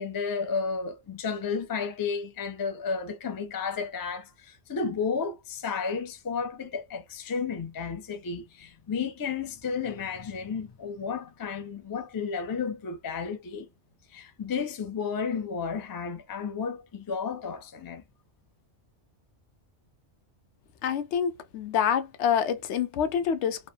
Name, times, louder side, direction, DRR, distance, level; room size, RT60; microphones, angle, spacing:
voice 1, 0.0-13.7 14.1-18.0, left 5 dB, 35° left, 0.3 m, -32 dB
voice 2, 20.8-23.7, left 8 dB, 75° left, 0.8 m, -27 dB
3.1 x 2.0 x 2.3 m
omnidirectional pair, 1.2 m